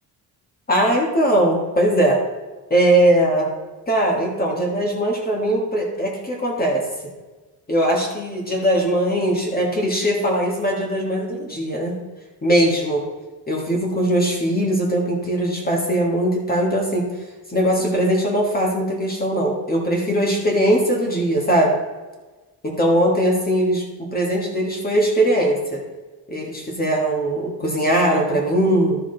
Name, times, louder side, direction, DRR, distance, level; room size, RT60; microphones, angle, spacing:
voice 1, 0.7-2.2 2.7-3.5 3.9-6.8 7.7-11.9 12.4-13.0 13.5-17.0 17.5-21.8 22.6-23.8 24.1-25.8 26.3-29.0, right 1 dB, 20° left, -1 dB, 1.7 m, -20 dB
12.5 x 6.6 x 3.9 m, 1.2 s
wide cardioid pair, 175°, 41 cm